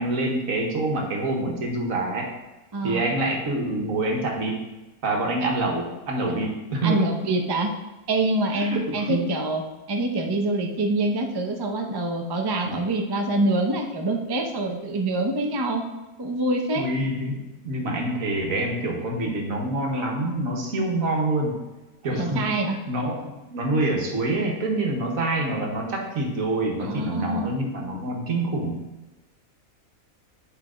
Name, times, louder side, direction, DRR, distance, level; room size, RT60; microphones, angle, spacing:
voice 1, 0.0-2.3 2.8-4.6 5.0-7.1 8.5-9.3 12.6-12.8 16.8-21.7 22.0-28.8, right 2 dB, 65° right, 1 dB, 1.5 m, -26 dB
voice 2, 2.7-3.1 6.8-7.7 8.1-9.6 9.9-15.8 16.2-16.9 22.2-22.8 26.8-27.5, right 2 dB, 40° right, 3 dB, 0.3 m, -25 dB
8.3 x 3.4 x 4.9 m, 1.1 s
omnidirectional pair, 1.6 m